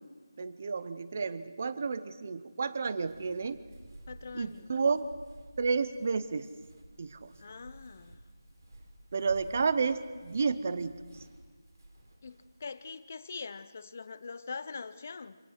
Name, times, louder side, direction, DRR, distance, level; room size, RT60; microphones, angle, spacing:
voice 1, 0.4-3.6 4.3-5.1 5.6-6.5 7.0-7.3 9.1-10.9, right 5 dB, 30° right, 14 dB, 0.6 m, -31 dB
Walk footsteps, 3.0-12.7, right 1 dB, 55° right, 3.5 m, -53 dB
voice 2, 4.1-4.7 7.4-8.2 12.2-15.4, left 4 dB, 30° left, 14 dB, 0.6 m, -43 dB
25.5 x 17.5 x 6.5 m, 1.5 s
figure-of-eight pair, 175°, 2 cm